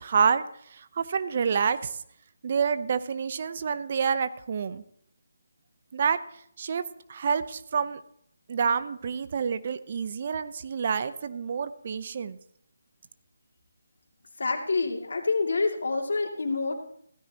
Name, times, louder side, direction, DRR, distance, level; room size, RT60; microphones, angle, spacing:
voice 1, 0.0-2.0 2.4-4.8 5.9-6.2 6.6-6.8 7.1-8.0 8.5-12.4, right 6 dB, 45° right, 13 dB, 0.7 m, -28 dB
voice 2, 14.4-16.7, left 3 dB, 65° left, 4 dB, 2.4 m, -27 dB
16.0 x 14.0 x 2.9 m, 0.66 s
figure-of-eight pair, 155°, 0 cm